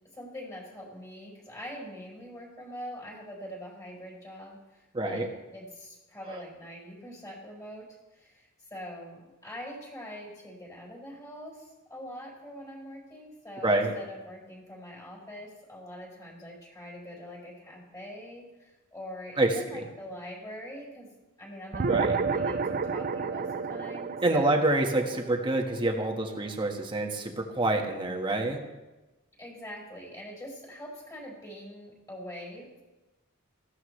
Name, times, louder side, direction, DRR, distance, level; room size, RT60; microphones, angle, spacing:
voice 1, 0.1-21.1 21.4-24.6 29.4-32.8, equal, 15° left, -3 dB, 5.0 m, -44 dB
voice 2, 4.9-5.3 13.6-13.9 19.4-19.8 21.9-22.2 24.2-28.6, right 2 dB, 25° right, 2 dB, 1.6 m, -27 dB
sound 1, 21.7-26.5, right 5 dB, 45° right, 0.6 m, -31 dB
19.0 x 15.0 x 3.3 m, 1.1 s
head